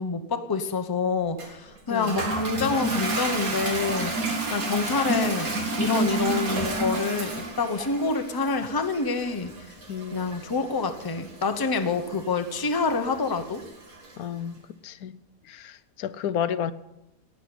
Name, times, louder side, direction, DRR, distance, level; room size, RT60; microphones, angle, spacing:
voice 1, 0.0-4.1 4.5-9.5 10.1-13.6, left 4 dB, 20° left, 0.8 m, -27 dB
Toilet flush, 1.4-14.2, right 2 dB, 75° right, 2.5 m, -31 dB
voice 2, 9.9-10.3 14.2-14.5 14.8-15.1 15.5-16.7, left 9 dB, 80° left, 1.1 m, -31 dB
17.5 x 6.6 x 8.6 m
omnidirectional pair, 1.5 m